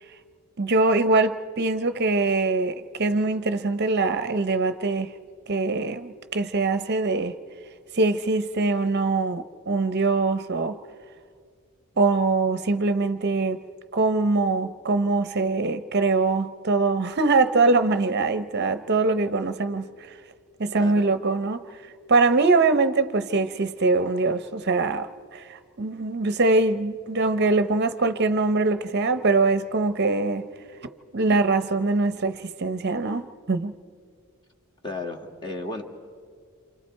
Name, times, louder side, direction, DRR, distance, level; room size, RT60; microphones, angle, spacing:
voice 1, 0.6-5.1 5.5-7.3 7.9-10.8 12.0-13.6 13.9-19.9 20.6-21.6 22.1-30.5 31.1-33.7, right 3 dB, 45° right, 0.7 m, -23 dB
voice 2, 34.8-35.8, left 2 dB, 20° left, 1.9 m, -33 dB
28.5 x 27.0 x 4.5 m
head